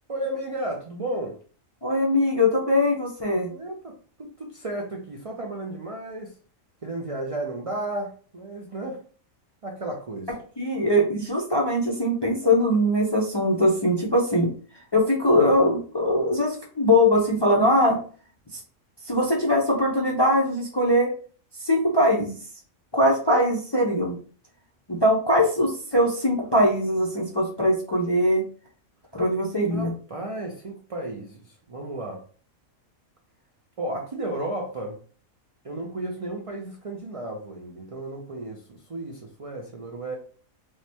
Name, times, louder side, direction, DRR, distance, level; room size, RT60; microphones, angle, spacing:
voice 1, 0.1-1.4 3.5-6.3 6.8-9.0 9.6-10.3 29.7-32.2 33.8-35.0 35.6-40.2, right 1 dB, 65° right, 0 dB, 0.3 m, -33 dB
voice 2, 1.8-3.5 10.6-14.5 14.9-18.0 18.5-18.6 19.1-21.1 21.6-22.3 22.9-24.2 24.9-28.4 29.1-29.9, left 1 dB, 35° left, -2 dB, 0.4 m, -21 dB
4.8 x 2.1 x 2.8 m, 0.42 s
omnidirectional pair, 1.4 m